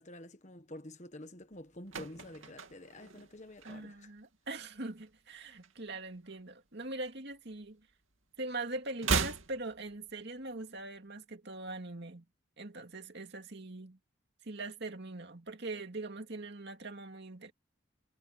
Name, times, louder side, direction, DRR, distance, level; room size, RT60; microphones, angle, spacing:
voice 1, 0.0-4.1, left 1 dB, 35° left, 1.3 m, -49 dB
sound 1, 1.5-4.2 4.5-4.8 5.1-6.5 6.8-8.2 8.4-10.5 10.8-10.9, right 4 dB, 75° right, 2.5 m, -37 dB
voice 2, 3.6-7.8 8.4-12.2 12.6-14.0 14.4-17.5, right 2 dB, 55° right, 2.4 m, -42 dB
head